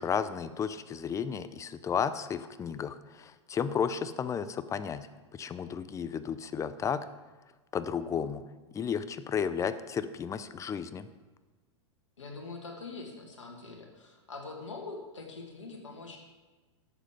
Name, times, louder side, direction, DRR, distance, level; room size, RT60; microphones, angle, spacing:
voice 1, 0.0-5.1 5.3-7.0 7.7-8.4 8.7-11.1, left 7 dB, 20° left, 13 dB, 0.6 m, -33 dB
voice 2, 12.2-16.2, left 3 dB, 90° left, 1 dB, 2.0 m, -43 dB
11.0 x 7.6 x 5.2 m, 1.2 s
hypercardioid pair, 110°, 15 cm